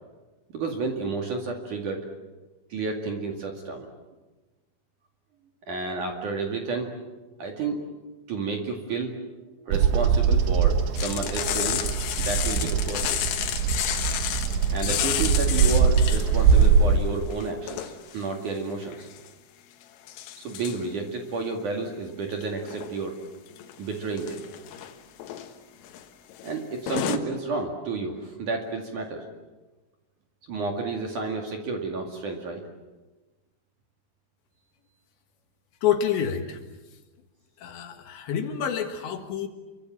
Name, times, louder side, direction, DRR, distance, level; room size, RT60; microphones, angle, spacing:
voice 1, 0.5-2.0 2.7-3.9 5.7-6.9 7.4-7.8 8.3-9.2 9.7-11.9 12.2-13.2 14.7-19.1 20.4-23.2 23.8-24.4 26.4-29.3 30.5-32.6, right 4 dB, 50° right, 2 dB, 3.0 m, -31 dB
Bird vocalization bird call bird song, 9.7-17.0, right 6 dB, 75° right, 3.7 m, -22 dB
sound 1, 11.0-16.7 17.0-18.2 18.8-19.3 20.1-20.8 22.3-23.0 23.5-23.7 24.1-24.9 25.2-25.5 25.8-26.0 26.3-26.5 26.9-27.2, left 11 dB, 90° left, 4.1 m, -31 dB
voice 2, 35.8-36.6 37.6-39.5, left 8 dB, 70° left, 5 dB, 3.7 m, -27 dB
28.0 x 24.5 x 7.5 m, 1.2 s
omnidirectional pair, 5.8 m